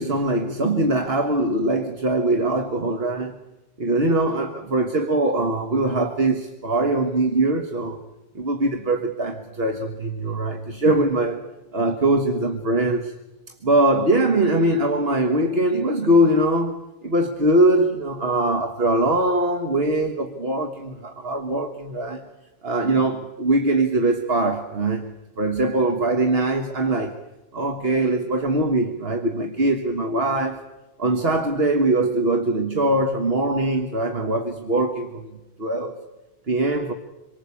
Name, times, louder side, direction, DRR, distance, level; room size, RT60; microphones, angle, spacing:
voice 1, 0.0-3.4 3.8-8.0 8.4-11.4 11.7-13.1 13.5-22.2 22.6-27.2 27.5-30.6 31.0-35.9 36.5-36.9, right 2 dB, 70° right, 1.7 m, -22 dB
27.0 x 23.0 x 8.4 m
omnidirectional pair, 1.0 m